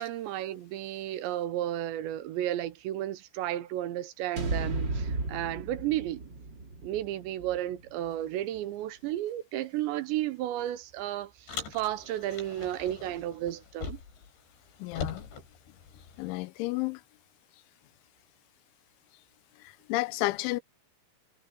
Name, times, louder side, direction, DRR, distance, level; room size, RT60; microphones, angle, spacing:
voice 1, 0.0-6.2 6.8-14.0, right 13 dB, 80° right, 3.0 m, -33 dB
sound 1, 4.4-8.6, right 2 dB, 30° right, 2.7 m, -35 dB
Car, 11.5-14.3 14.5-16.4, left 5 dB, 70° left, 7.2 m, -41 dB
voice 2, 14.8-15.3 16.2-17.0 19.9-20.6, left 21 dB, 85° left, 3.2 m, -31 dB
omnidirectional pair, 5.3 m